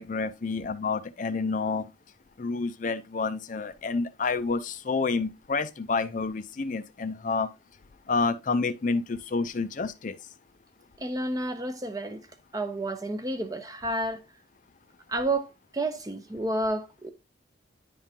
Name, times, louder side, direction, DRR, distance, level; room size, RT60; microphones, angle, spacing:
voice 1, 0.0-1.9 2.4-7.5 8.1-10.2, left 4 dB, 40° left, 0.4 m, -29 dB
voice 2, 11.0-12.2 12.5-14.2 15.1-17.1, right 1 dB, 20° right, 0.6 m, -30 dB
9.9 x 3.6 x 2.8 m
head